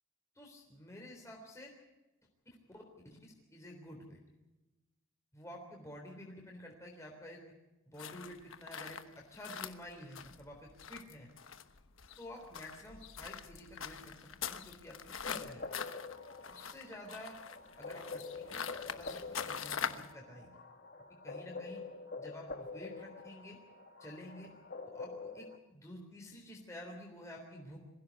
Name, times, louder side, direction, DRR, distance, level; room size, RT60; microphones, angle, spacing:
voice 1, 0.4-1.7 2.7-2.8 3.5-4.2 5.3-7.4 7.9-11.3 12.2-15.7 16.5-17.4 17.8-20.6 21.2-21.8 22.2-23.6 24.0-24.5 24.9-27.8, left 1 dB, 15° left, -1 dB, 3.5 m, -50 dB
sound 1, 8.0-20.1, left 7 dB, 75° left, 1.2 m, -44 dB
sound 2, 15.2-25.6, left 3 dB, 50° left, 1.4 m, -46 dB
22.5 x 15.5 x 8.2 m, 1.1 s
head